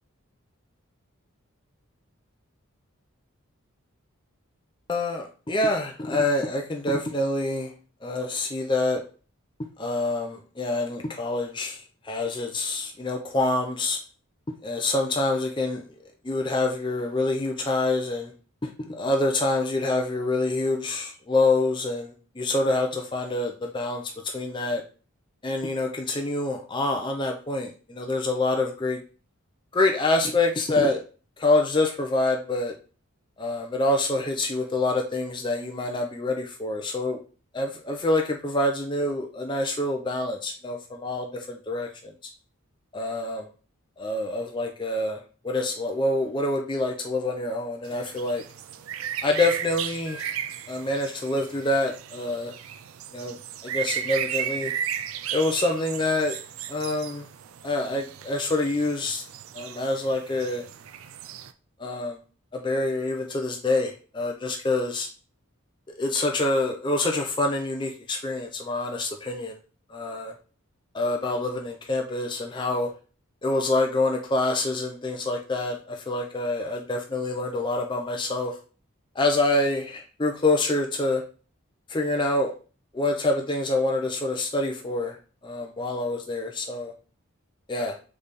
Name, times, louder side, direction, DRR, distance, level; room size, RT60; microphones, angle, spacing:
voice 1, 4.9-7.7 8.0-9.0 9.8-11.8 12.0-14.0 14.6-15.9 16.2-18.3 18.6-24.0 24.3-24.8 25.4-29.0 29.7-31.0 31.4-32.7 33.4-37.2 37.5-42.1 42.9-43.5 44.0-48.4 49.2-50.3 50.7-52.5 53.1-53.4 53.6-54.7 55.3-56.4 56.7-57.3 57.6-59.2 59.5-60.6 61.8-62.2 62.5-65.1 66.0-69.6 69.9-70.3 70.9-72.9 73.4-78.5 79.2-81.2 81.9-82.5 82.9-85.2 85.4-86.9 87.7-88.0, left 2 dB, 20° left, 2 dB, 0.5 m, -26 dB
sound 1, 47.9-61.5, right 9 dB, 75° right, 0.4 m, -35 dB
4.1 x 3.3 x 3.4 m, 0.37 s
head